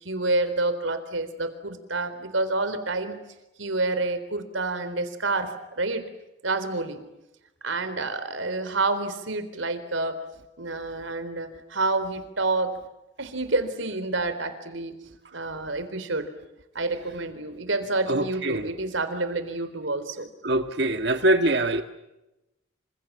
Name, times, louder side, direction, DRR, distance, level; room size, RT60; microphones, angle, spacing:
voice 1, 0.0-3.2 3.6-6.0 6.4-7.0 7.6-10.2 10.6-12.7 13.2-15.0 15.3-16.3 16.7-20.3, right 2 dB, 80° right, 4.0 m, -28 dB
voice 2, 18.1-18.7 20.4-21.8, right 1 dB, 60° right, 1.6 m, -23 dB
28.5 x 27.0 x 7.5 m
head